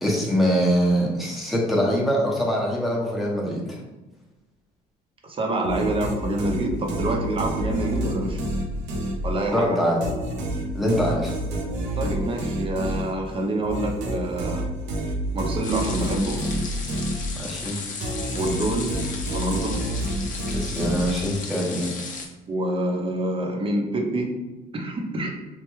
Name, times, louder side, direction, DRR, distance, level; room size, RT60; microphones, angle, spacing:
voice 1, 0.0-3.8 9.5-10.0 10.7-11.3 17.4-17.8 20.5-21.9, equal, ahead, -4 dB, 0.8 m, -23 dB
voice 2, 5.2-8.5 9.2-9.8 12.0-14.6 15.3-16.4 18.3-18.9 19.3-19.8 22.5-24.3 24.7-25.3, right 1 dB, 30° right, 1 dB, 0.6 m, -26 dB
sound 1, 5.6-9.6 10.0-17.6 18.0-21.5, right 1 dB, 80° right, 0.5 m, -29 dB
sound 2, 15.6-22.3, left 4 dB, 50° left, 0.6 m, -35 dB
3.1 x 2.2 x 3.0 m, 1.1 s
cardioid pair, 110°, 17 cm